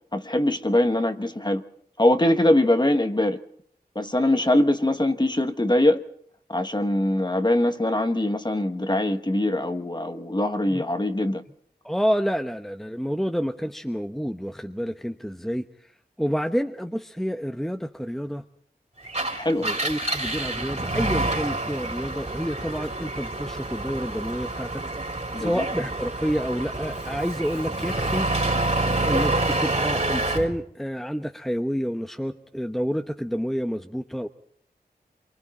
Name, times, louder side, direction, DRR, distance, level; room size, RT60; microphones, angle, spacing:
voice 1, 0.1-1.6 2.0-3.4 3.9-6.0 6.5-11.4 19.3-19.7 25.3-25.6, left 1 dB, 25° left, 1.4 m, -22 dB
voice 2, 11.8-15.6 16.2-18.4 19.6-24.8 25.4-28.3 29.0-34.3, equal, ahead, 1.0 m, -28 dB
Engine, 19.0-30.5, right 2 dB, 45° right, 3.8 m, -27 dB
27.0 x 24.0 x 4.4 m
wide cardioid pair, 45°, 16 cm